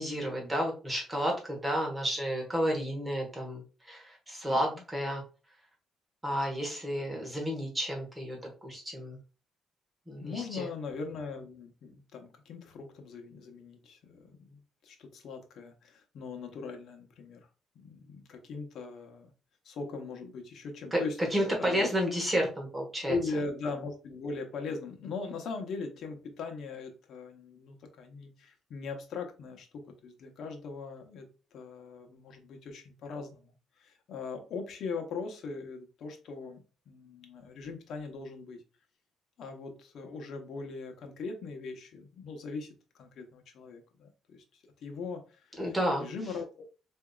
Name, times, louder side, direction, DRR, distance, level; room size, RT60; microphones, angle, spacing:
voice 1, 0.0-3.6 3.9-5.2 6.2-9.2 10.1-10.6 20.9-23.2 45.6-46.1, equal, 15° right, 0 dB, 1.2 m, -31 dB
voice 2, 4.4-4.8 10.2-17.5 17.7-19.3 19.6-21.2 21.6-21.9 23.1-31.3 31.5-36.6 36.9-38.6 39.4-46.5, left 4 dB, 70° left, 4 dB, 0.9 m, -40 dB
4.8 x 2.7 x 2.3 m, 0.35 s
cardioid pair, 90°, 0 cm